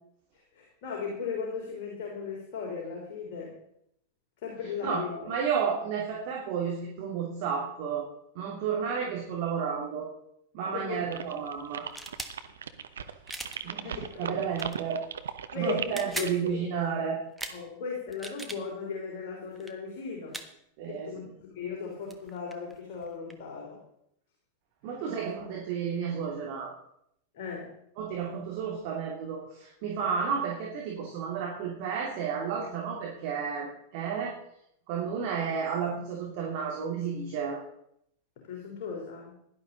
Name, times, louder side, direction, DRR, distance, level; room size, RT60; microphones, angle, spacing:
voice 1, 0.3-3.5 4.4-5.3 10.7-11.0 13.6-14.4 15.5-16.7 17.5-20.4 20.9-21.3 21.6-23.8 27.3-27.7 38.4-39.4, left 5 dB, 45° left, -1 dB, 3.6 m, -37 dB
voice 2, 4.8-8.1 8.3-10.1 10.5-11.8 13.6-15.0 15.5-17.2 20.8-21.1 24.8-26.7 28.0-33.7 33.9-34.3 34.9-37.6, right 6 dB, 45° right, -2 dB, 2.8 m, -32 dB
sound 1, 11.1-16.5, right 8 dB, 65° right, 0.9 m, -38 dB
sound 2, 11.9-12.3 13.3-13.6 14.5-14.8 15.8-16.4 17.4-17.6 18.1-18.6 19.6-19.7 20.3-20.5 21.8-21.9 22.1-23.4, right 1 dB, ahead, 1.4 m, -39 dB
16.5 x 11.5 x 4.0 m, 0.74 s
figure-of-eight pair, 90°, 0 cm